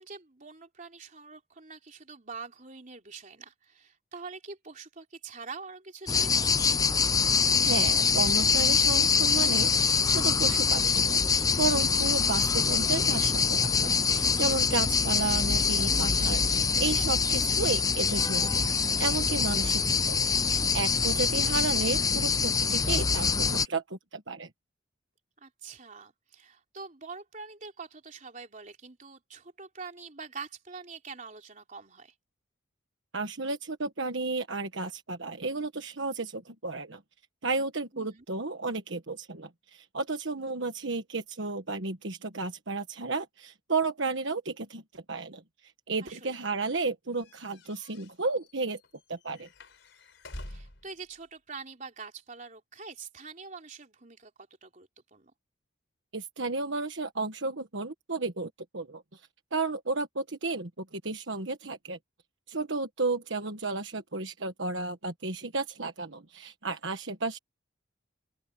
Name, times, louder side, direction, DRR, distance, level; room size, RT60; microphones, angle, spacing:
voice 1, 0.0-6.5 25.4-32.1 37.9-38.2 46.0-46.5 50.5-55.3, right 4 dB, 40° right, 3.5 m, -45 dB
sound 1, 6.1-23.7, left 5 dB, 15° left, 0.6 m, -25 dB
voice 2, 7.6-24.5 33.1-37.0 37.4-48.8 49.1-49.5 56.1-59.2 59.5-62.0 62.5-67.4, right 3 dB, 65° right, 1.4 m, -33 dB
sound 2, 47.2-50.9, left 1 dB, 60° left, 5.2 m, -47 dB
open air
head